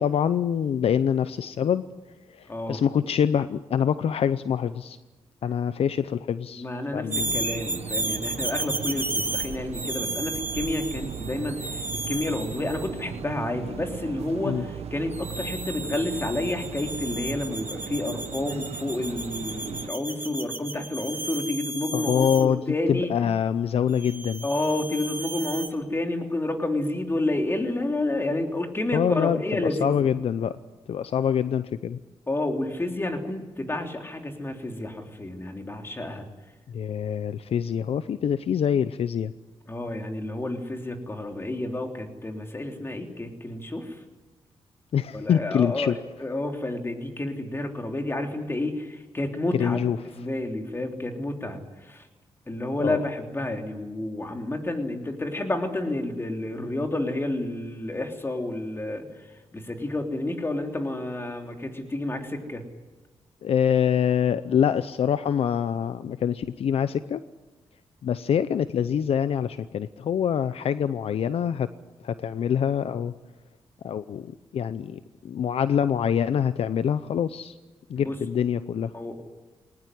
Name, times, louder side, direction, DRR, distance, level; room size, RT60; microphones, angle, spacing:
voice 1, 0.0-1.8 2.3-5.0 5.4-6.6 6.9-7.3 14.4-14.6 21.9-22.6 22.9-24.5 28.9-30.6 30.9-32.0 36.7-39.3 44.9-46.0 49.5-50.0 52.8-53.0 63.4-67.2 68.0-71.7 72.0-73.1 73.8-75.0 75.2-77.5 77.9-78.9, left 8 dB, 70° left, 13 dB, 0.7 m, -25 dB
voice 2, 2.5-2.8 6.6-23.1 24.4-29.9 32.3-36.3 39.7-44.0 45.1-52.1 52.5-59.3 59.5-62.6 78.0-78.2 78.9-79.2, left 2 dB, 25° left, 3 dB, 3.4 m, -30 dB
sound 1, 7.1-13.0 15.1-22.5 24.0-25.7, right 2 dB, 20° right, 1.8 m, -33 dB
sound 2, 7.1-19.9, right 8 dB, 90° right, 1.0 m, -38 dB
20.0 x 19.0 x 9.9 m, 1.2 s
cardioid pair, 85°, 10 cm